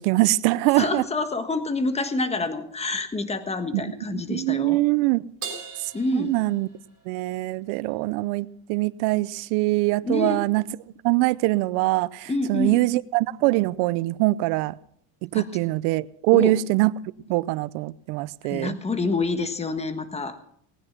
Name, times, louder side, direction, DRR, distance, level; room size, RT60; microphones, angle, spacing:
voice 1, 0.0-1.0 3.7-5.3 5.8-6.7 7.1-10.6 11.0-14.8 15.2-16.9 17.3-18.8, right 20 dB, 80° right, 0.7 m, -23 dB
voice 2, 0.8-4.8 5.9-6.4 10.0-10.4 12.3-12.8 15.3-15.5 16.3-16.6 18.4-20.4, left 3 dB, 15° left, 1.4 m, -27 dB
Crash cymbal, 5.4-7.1, right 6 dB, 30° right, 6.0 m, -38 dB
19.0 x 9.9 x 5.9 m
cardioid pair, 130°, 46 cm